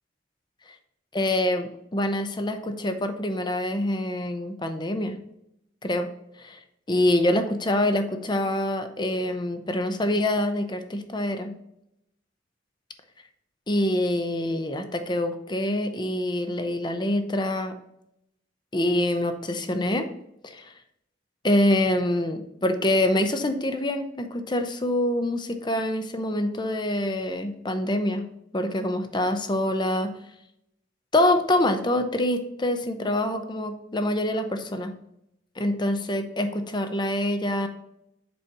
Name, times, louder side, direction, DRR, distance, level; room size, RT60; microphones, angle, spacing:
voice 1, 1.1-5.1 5.8-6.1 6.4-6.6 6.9-11.5 13.7-17.7 18.7-20.1 20.4-20.7 21.4-28.2 28.5-30.1 31.1-34.9 35.6-37.7, left 1 dB, 25° left, 8 dB, 0.7 m, -25 dB
6.9 x 5.1 x 2.9 m, 0.80 s
head